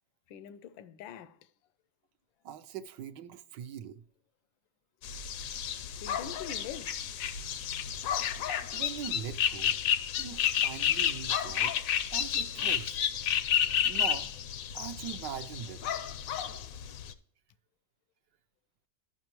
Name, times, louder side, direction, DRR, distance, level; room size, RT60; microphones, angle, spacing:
voice 1, 0.3-1.4 6.0-7.0, left 8 dB, 85° left, 1.3 m, -44 dB
voice 2, 2.4-4.0 8.7-9.8 10.2-11.7 12.1-13.0 13.7-14.3 14.7-15.8, right 9 dB, 70° right, 1.2 m, -41 dB
sound 1, 5.0-17.1, left 9 dB, 70° left, 0.8 m, -31 dB
14.0 x 5.6 x 3.0 m
omnidirectional pair, 2.0 m